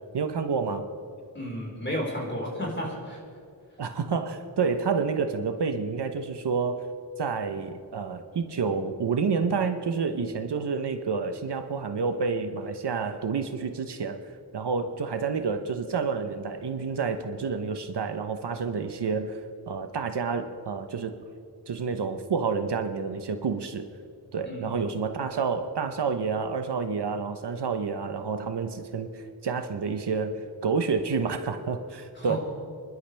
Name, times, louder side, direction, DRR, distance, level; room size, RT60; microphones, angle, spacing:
voice 1, 0.1-0.9 3.8-6.8 7.2-14.2 14.5-19.4 19.7-21.1 21.7-23.8 24.3-32.4, right 5 dB, 70° right, 7 dB, 1.0 m, -29 dB
voice 2, 1.3-3.2 24.4-24.8 32.1-32.4, equal, 25° left, -3 dB, 4.5 m, -32 dB
29.5 x 12.0 x 3.4 m, 2.2 s
wide cardioid pair, 95°, 42 cm